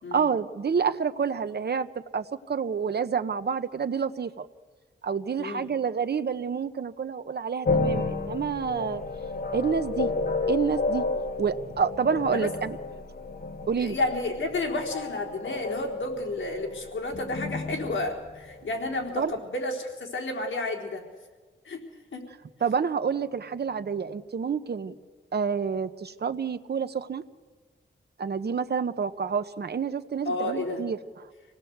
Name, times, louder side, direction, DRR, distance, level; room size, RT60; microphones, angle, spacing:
voice 1, 0.1-4.5 5.0-9.0 9.5-10.1 10.5-11.1 11.4-12.8 13.7-14.0 19.1-19.3 22.6-24.9 25.3-27.2 28.2-31.0, right 6 dB, 55° right, 10 dB, 1.0 m, -28 dB
voice 2, 5.4-5.7 12.3-12.5 13.8-21.0 21.6-21.8 22.1-22.3 30.2-30.8, left 2 dB, 80° left, 1 dB, 4.0 m, -31 dB
sound 1, 7.6-19.1, left 3 dB, 50° left, 1.9 m, -31 dB
27.0 x 18.5 x 8.0 m, 1.4 s
wide cardioid pair, 115°, 19 cm